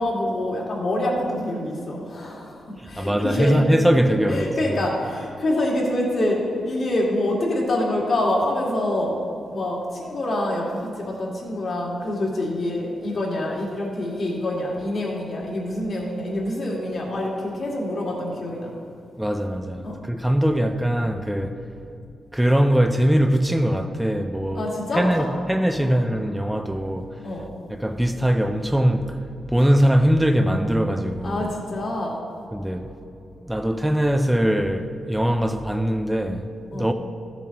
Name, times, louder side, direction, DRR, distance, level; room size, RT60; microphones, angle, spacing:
voice 1, 0.0-3.6 4.3-9.2 9.5-18.7 19.8-20.0 24.6-25.0 25.8-25.9 27.2-27.4 31.2-32.2 36.7-36.9, left 1 dB, 50° left, 2.1 m, -26 dB
voice 2, 2.8-4.8 19.2-21.7 22.3-27.4 27.7-31.5 32.5-33.0 33.4-36.9, equal, 5° right, 0.4 m, -22 dB
13.0 x 7.2 x 2.9 m
cardioid pair, 115°, 0 cm